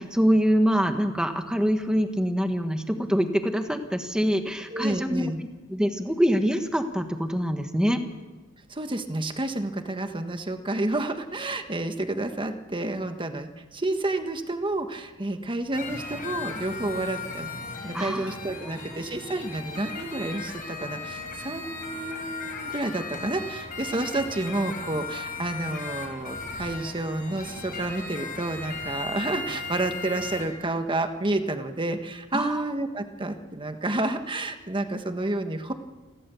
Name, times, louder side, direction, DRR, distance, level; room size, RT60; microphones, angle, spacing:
voice 1, 0.0-5.2 5.7-8.0 17.9-18.3 18.7-19.1 32.3-32.6, equal, 5° right, 6 dB, 1.5 m, -25 dB
voice 2, 4.7-5.4 8.7-17.5 17.8-35.7, right 2 dB, 25° right, 7 dB, 1.5 m, -30 dB
sound 1, 15.7-30.5, left 4 dB, 40° left, 5.1 m, -37 dB
29.5 x 13.0 x 7.1 m, 1.2 s
head